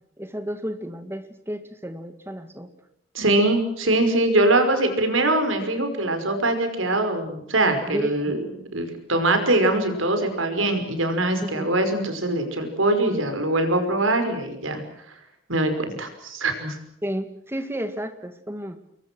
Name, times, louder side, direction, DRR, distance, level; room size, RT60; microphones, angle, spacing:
voice 1, 0.2-2.7 7.9-8.4 11.4-11.7 17.0-18.8, equal, 10° right, 8 dB, 2.2 m, -32 dB
voice 2, 3.1-8.5 8.7-14.8 15.5-16.8, right 2 dB, 90° right, 7 dB, 5.4 m, -22 dB
29.0 x 22.5 x 6.3 m, 0.75 s
head